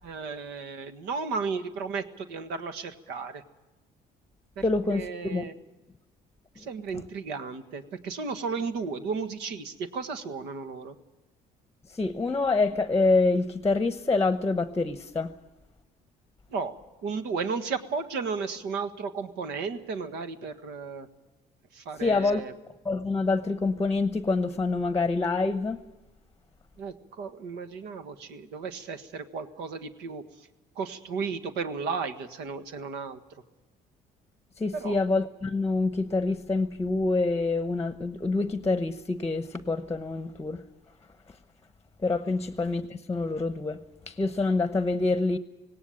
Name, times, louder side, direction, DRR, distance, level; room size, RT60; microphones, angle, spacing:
voice 1, 0.0-3.4 4.5-4.6 4.9-5.5 6.5-10.9 16.5-21.1 21.7-22.5 26.8-30.5 30.7-33.2 34.7-35.0, right 5 dB, 85° right, 1.6 m, -34 dB
voice 2, 4.6-5.4 11.9-15.3 22.0-22.4 22.8-25.8 34.6-40.6 42.0-45.4, left 3 dB, 15° left, 0.9 m, -26 dB
18.0 x 18.0 x 8.7 m
cardioid pair, 110°, 17 cm